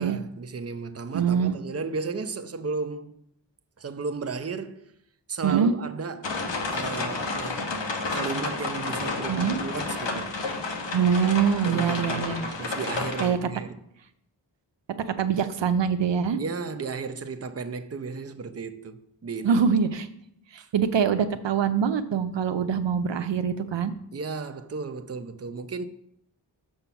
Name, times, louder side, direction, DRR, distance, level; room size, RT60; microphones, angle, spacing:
voice 1, 0.0-3.2 3.8-4.9 5.3-6.4 6.7-7.6 8.1-10.4 11.6-13.7 16.4-19.7 20.6-20.7 24.1-25.8, right 4 dB, 35° right, 0.7 m, -34 dB
voice 2, 1.1-1.6 5.4-5.7 9.3-9.6 10.9-12.4 13.2-13.4 15.1-16.4 19.4-20.1 20.5-23.9, right 7 dB, 70° right, 0.6 m, -24 dB
sound 1, 6.2-13.3, left 3 dB, 70° left, 1.3 m, -31 dB
6.9 x 5.7 x 5.7 m
cardioid pair, 45°, 45 cm